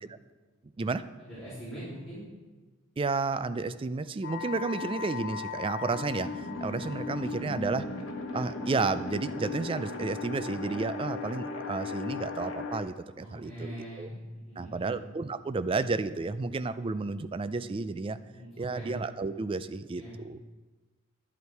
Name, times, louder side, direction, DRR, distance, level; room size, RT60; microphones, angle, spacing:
voice 1, 1.2-2.2 13.1-15.0 18.2-18.9 19.9-20.1, right 1 dB, ahead, -15 dB, 3.6 m, -43 dB
voice 2, 3.0-7.9 8.3-14.1 14.6-18.2 18.6-20.4, right 3 dB, 25° right, 13 dB, 0.3 m, -32 dB
sound 1, 4.2-12.8, left 3 dB, 70° left, 1.2 m, -37 dB
11.0 x 8.3 x 4.6 m, 1.2 s
head